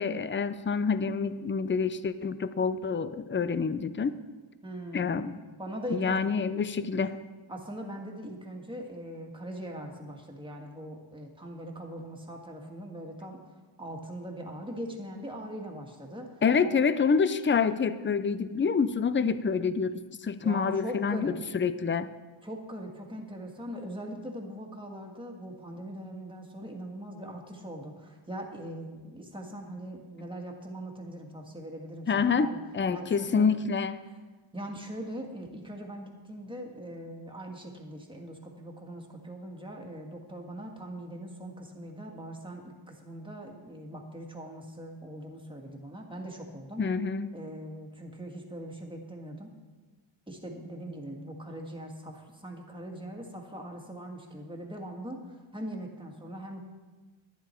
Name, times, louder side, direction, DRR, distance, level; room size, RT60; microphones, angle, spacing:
voice 1, 0.0-4.2 4.9-5.3 5.9-7.2 16.4-22.1 32.1-34.0 46.8-47.4, left 5 dB, 25° left, 13 dB, 0.5 m, -27 dB
voice 2, 4.6-5.2 5.6-6.2 6.8-6.9 7.5-13.4 13.8-16.7 20.4-21.4 22.4-32.6 32.9-33.5 34.0-34.2 34.5-46.8 47.3-49.5 50.3-56.6, right 1 dB, 10° right, 1 dB, 1.9 m, -41 dB
11.5 x 9.6 x 4.5 m, 1.3 s
cardioid pair, 70°, 49 cm